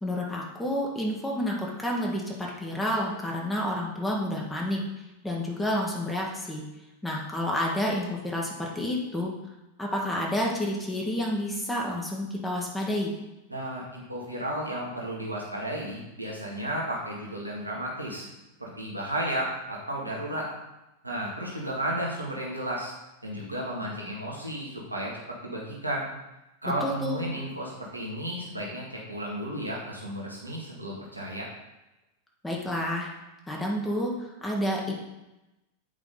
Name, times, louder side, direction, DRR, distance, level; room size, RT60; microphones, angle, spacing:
voice 1, 0.0-4.8 5.2-6.6 7.0-9.3 9.8-13.1 26.8-27.2 32.4-33.1 33.5-34.9, left 1 dB, 10° left, -2 dB, 1.3 m, -29 dB
voice 2, 13.5-18.3 18.6-20.5 21.0-22.9 23.2-25.1 25.4-26.1 26.6-31.5, right 1 dB, 85° right, -3 dB, 1.7 m, -33 dB
8.2 x 5.0 x 3.9 m, 0.97 s
figure-of-eight pair, 90°, 0 cm